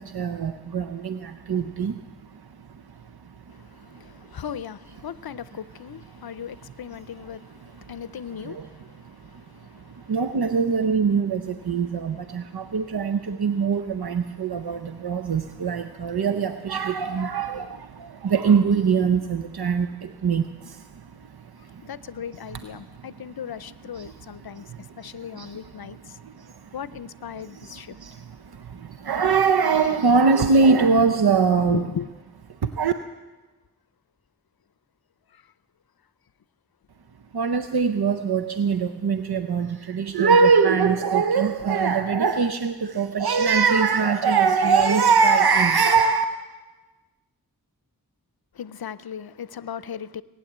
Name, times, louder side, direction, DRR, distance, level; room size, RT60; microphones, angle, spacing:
voice 1, 0.1-1.9 8.4-8.6 10.1-17.7 18.2-20.4 25.4-25.5 28.0-28.1 29.0-31.9 32.8-32.9 37.3-46.2, right 5 dB, 80° right, 0.7 m, -21 dB
voice 2, 3.6-9.4 9.8-9.9 21.8-24.6 25.0-26.2 26.7-28.0 31.6-32.1 35.3-35.4 48.6-50.2, left 8 dB, 75° left, 0.6 m, -37 dB
19.0 x 9.5 x 7.9 m
wide cardioid pair, 65°, 37 cm